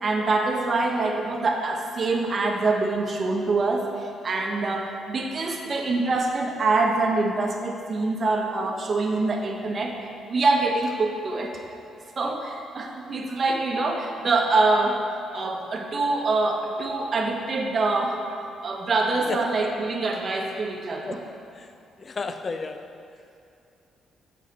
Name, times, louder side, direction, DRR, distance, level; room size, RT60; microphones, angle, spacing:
voice 1, 0.0-10.0 10.3-11.6 12.2-15.0 15.3-18.2 18.6-21.2, right 3 dB, 40° right, 2 dB, 0.9 m, -25 dB
voice 2, 22.0-22.9, left 4 dB, 40° left, 8 dB, 0.4 m, -32 dB
7.2 x 5.6 x 4.0 m, 2.5 s
cardioid pair, 90°, 0 cm